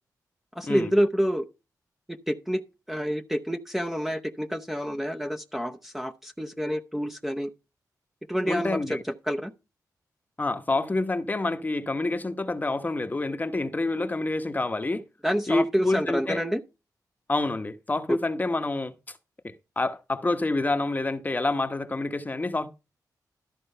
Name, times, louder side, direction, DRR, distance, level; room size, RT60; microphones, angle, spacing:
voice 1, 0.6-1.5 2.1-2.6 2.9-7.5 8.3-8.8 9.3-9.5 15.2-16.6 18.1-18.2, equal, 5° right, 0.7 m, -28 dB
voice 2, 8.4-9.0 10.4-15.0 15.5-16.4 17.3-18.9 19.4-22.7, left 2 dB, 25° left, 0.9 m, -27 dB
13.0 x 4.5 x 5.5 m
cardioid pair, 95°, 7 cm